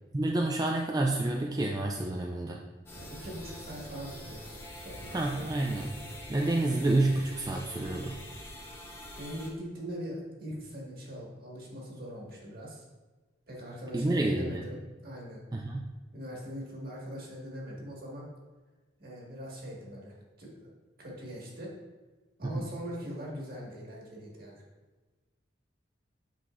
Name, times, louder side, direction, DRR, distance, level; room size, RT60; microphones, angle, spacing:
voice 1, 0.1-2.6 5.1-6.0 6.3-8.2 13.9-14.6 15.5-15.9 22.4-22.5, right 2 dB, 20° right, 0 dB, 0.4 m, -29 dB
sound 1, 2.9-9.5, left 1 dB, 15° left, 1.2 m, -45 dB
voice 2, 2.9-4.5 4.8-5.5 9.2-12.8 13.5-15.4 16.1-18.3 19.0-20.7 21.0-21.7 22.4-24.6, equal, 50° right, -3 dB, 1.9 m, -42 dB
8.3 x 5.7 x 2.5 m, 1.3 s
head